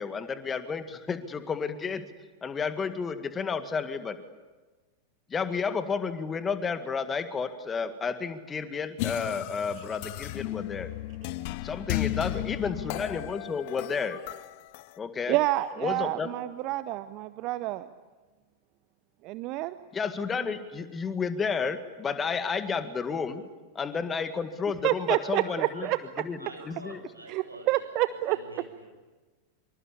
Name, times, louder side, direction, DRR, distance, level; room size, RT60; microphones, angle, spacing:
voice 1, 0.0-2.0 2.4-4.2 5.3-10.9 11.6-14.2 15.0-15.4 15.8-16.3 19.9-23.4 23.8-25.9 26.2-26.4 26.7-27.0, left 5 dB, 20° left, 10 dB, 1.9 m, -31 dB
sound 1, 9.0-15.0, left 16 dB, 45° left, 0.8 m, -34 dB
voice 2, 15.3-17.9 19.2-19.7 24.8-26.0 27.3-28.4, right 17 dB, 40° right, 14 dB, 0.8 m, -28 dB
voice 3, 25.4-25.9 26.4-28.9, right 1 dB, 85° right, 2 dB, 7.0 m, -47 dB
25.5 x 24.5 x 8.6 m, 1.3 s
figure-of-eight pair, 90°, 0 cm